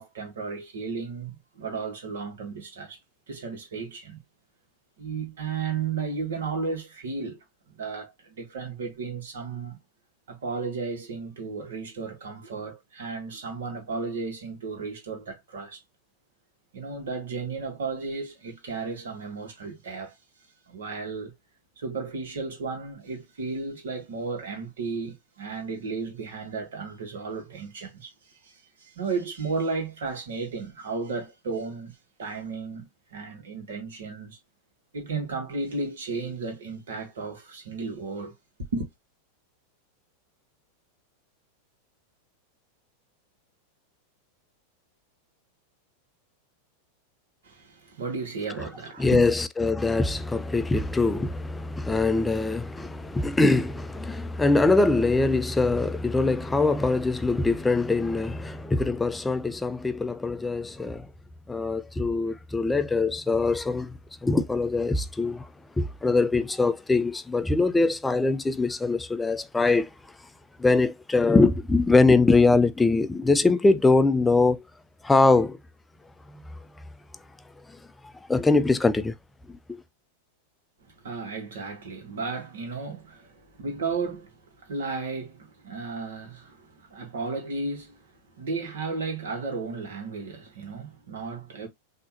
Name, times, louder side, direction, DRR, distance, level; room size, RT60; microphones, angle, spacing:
voice 1, 0.0-3.0 3.3-4.2 5.0-9.8 10.3-15.8 16.7-20.2 20.7-21.3 21.8-28.1 28.4-34.4 34.9-38.3 38.7-38.9 47.4-49.4 80.8-88.1 88.4-91.7, right 4 dB, 60° right, 1.9 m, -34 dB
voice 2, 49.0-61.1 61.5-65.5 65.8-69.9 70.6-74.6 75.0-75.6 76.3-76.4 77.7-77.8 78.3-79.1 79.5-79.8, left 3 dB, 10° left, 0.5 m, -23 dB
5.5 x 2.9 x 2.8 m
figure-of-eight pair, 90°, 0 cm